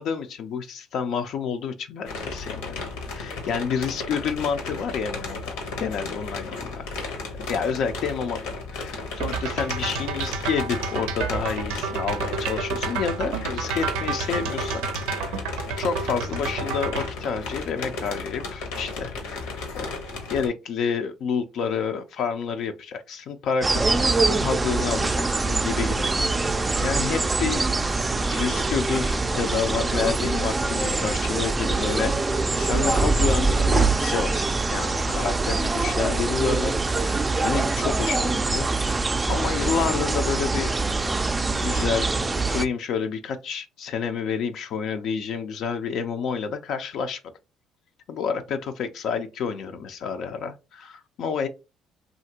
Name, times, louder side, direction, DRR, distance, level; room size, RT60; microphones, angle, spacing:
voice 1, 0.0-2.8 3.1-6.9 7.5-15.5 15.8-20.0 20.3-26.5 26.8-27.6 28.3-40.7 41.5-42.1 42.5-47.2 48.1-51.5, left 6 dB, 65° left, 0.4 m, -29 dB
sound 1, 2.1-20.5, left 3 dB, 85° left, 1.0 m, -34 dB
sound 2, 9.2-17.1, right 5 dB, 85° right, 0.4 m, -30 dB
sound 3, 23.6-42.7, right 3 dB, 20° right, 0.3 m, -24 dB
2.8 x 2.5 x 2.8 m
supercardioid pair, 75°, 0 cm